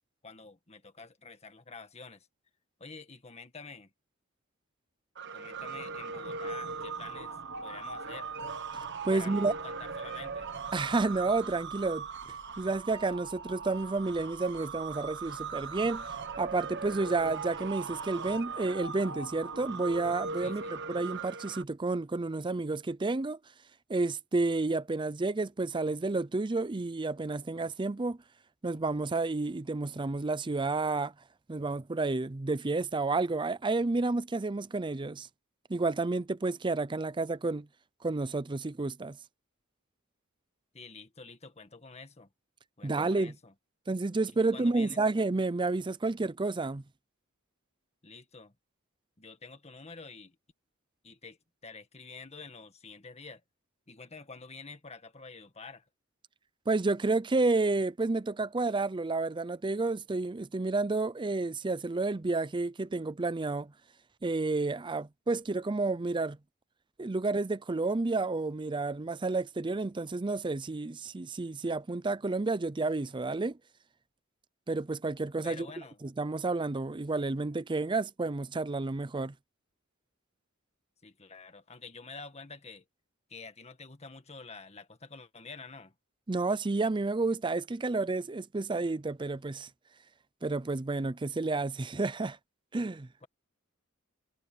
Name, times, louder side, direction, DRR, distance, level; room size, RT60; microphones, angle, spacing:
voice 1, 0.2-2.3 2.8-3.9 5.3-7.4 7.6-8.3 9.1-10.5 20.4-20.7 40.7-42.3 42.8-43.5 44.4-45.0 48.0-48.5 49.2-50.4 51.0-53.4 53.9-55.9 75.4-76.0 81.0-82.8 83.3-85.9, left 4 dB, 30° left, 1.8 m, -48 dB
sound 1, 5.1-21.6, right 5 dB, 60° right, 1.3 m, -39 dB
voice 2, 9.0-9.5 10.7-12.1 12.6-16.1 16.4-23.4 23.9-28.2 28.6-31.1 31.5-35.3 35.7-37.7 38.0-39.2 42.8-43.3 43.9-46.8 56.7-63.7 64.2-66.4 67.0-73.6 74.7-75.7 76.0-79.3 86.3-89.7 90.4-92.4 92.7-93.1, right 3 dB, 25° right, 0.5 m, -30 dB
head